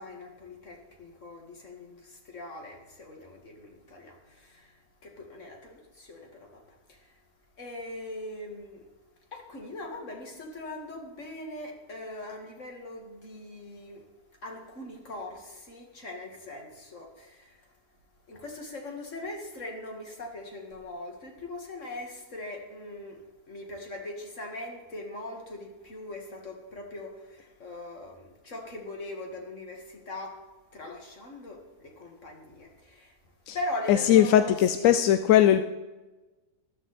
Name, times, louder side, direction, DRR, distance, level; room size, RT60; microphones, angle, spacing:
voice 1, 0.0-2.0 2.3-4.2 5.0-6.6 7.6-8.8 9.3-14.0 14.4-17.4 18.3-23.2 23.5-27.1 27.6-30.4 30.7-33.0 33.5-35.0, left 2 dB, 50° left, 2 dB, 2.4 m, -40 dB
voice 2, 33.9-35.6, left 11 dB, 70° left, 10 dB, 0.9 m, -20 dB
13.5 x 12.5 x 4.2 m, 1.2 s
omnidirectional pair, 1.6 m